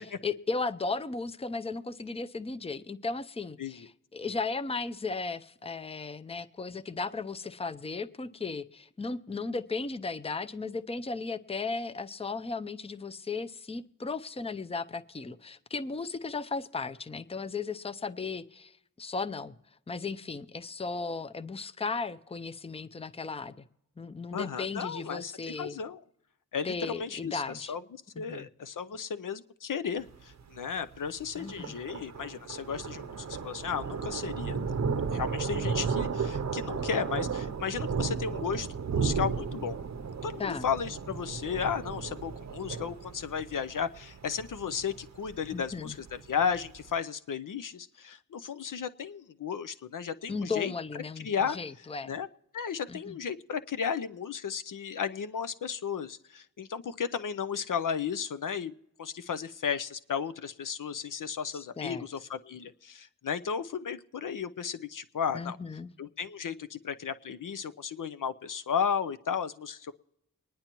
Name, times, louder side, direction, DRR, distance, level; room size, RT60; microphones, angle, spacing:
voice 1, 0.2-19.5 19.9-23.6 24.0-25.8 26.6-27.7 28.2-28.5 31.4-31.8 40.4-40.7 45.5-46.0 50.3-52.1 52.9-53.2 61.5-62.1 65.3-65.9, left 4 dB, 15° left, 14 dB, 0.6 m, -36 dB
voice 2, 24.3-26.0 26.5-27.8 28.2-34.6 35.1-39.8 40.2-50.7 51.2-51.6 52.1-52.3 52.5-58.7 59.0-65.6 66.0-69.9, left 7 dB, 65° left, 12 dB, 0.6 m, -34 dB
Thunder, 30.0-46.9, right 5 dB, 50° right, 0.7 m, -34 dB
24.0 x 10.5 x 3.0 m, 0.83 s
cardioid pair, 55°, 35 cm